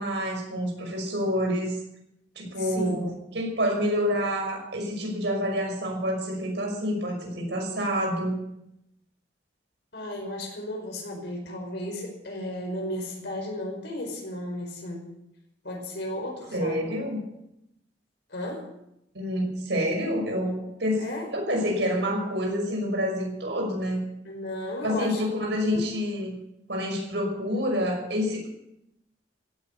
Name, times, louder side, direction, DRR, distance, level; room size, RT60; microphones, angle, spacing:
voice 1, 0.0-1.8 2.4-8.4 16.5-17.2 19.1-21.0 21.3-24.0 24.8-26.4 26.7-28.5, equal, 80° right, 1 dB, 5.9 m, -28 dB
voice 2, 2.6-3.0 9.9-15.1 15.6-16.9 18.3-18.7 21.0-21.3 24.2-25.2 25.7-25.9, left 1 dB, 70° left, 1 dB, 5.1 m, -34 dB
16.5 x 9.3 x 8.3 m, 0.82 s
head